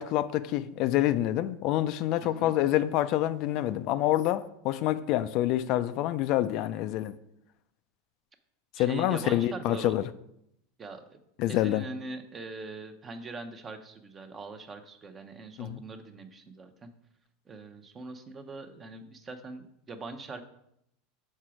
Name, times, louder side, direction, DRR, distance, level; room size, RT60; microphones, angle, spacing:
voice 1, 0.0-7.1 8.8-10.0 11.4-11.8 15.6-15.8, left 13 dB, 55° left, 0.3 m, -27 dB
voice 2, 2.2-2.6 8.8-10.0 10.8-11.2 11.4-16.9 17.5-20.4, right 3 dB, 25° right, 0.7 m, -42 dB
6.0 x 4.4 x 4.9 m
supercardioid pair, 115°, 0 cm